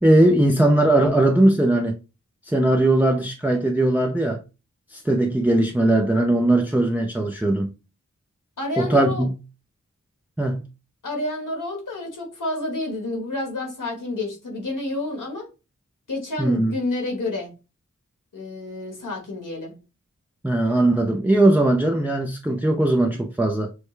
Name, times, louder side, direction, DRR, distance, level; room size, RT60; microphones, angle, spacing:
voice 1, 0.0-2.0 2.5-4.4 4.9-7.7 8.8-9.3 10.4-10.6 16.4-16.7 20.4-23.7, right 1 dB, 5° right, 0.5 m, -19 dB
voice 2, 8.6-9.2 11.0-15.5 16.1-17.5 18.3-19.7, left 2 dB, 80° left, 1.6 m, -29 dB
6.4 x 2.2 x 3.3 m
wide cardioid pair, 60°, 31 cm